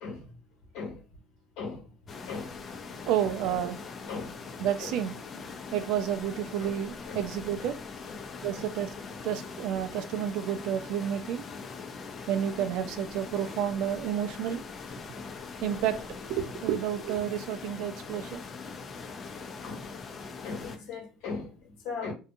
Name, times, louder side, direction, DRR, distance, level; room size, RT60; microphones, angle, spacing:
sound 1, 2.1-20.8, left 4 dB, 35° left, 0.5 m, -42 dB
voice 1, 2.3-2.6 4.1-4.3 4.8-4.9 6.6-6.7 7.1-7.3 8.1-8.2 8.5-8.7 19.6-19.8 20.4-22.1, left 4 dB, 75° left, 1.3 m, -38 dB
voice 2, 3.1-3.8 4.6-5.1 5.7-7.8 8.4-8.9 9.2-11.4 12.3-14.6 15.6-16.0 16.3-18.4, right 10 dB, 70° right, 0.4 m, -30 dB
2.7 x 2.3 x 2.5 m
supercardioid pair, 105°, 0 cm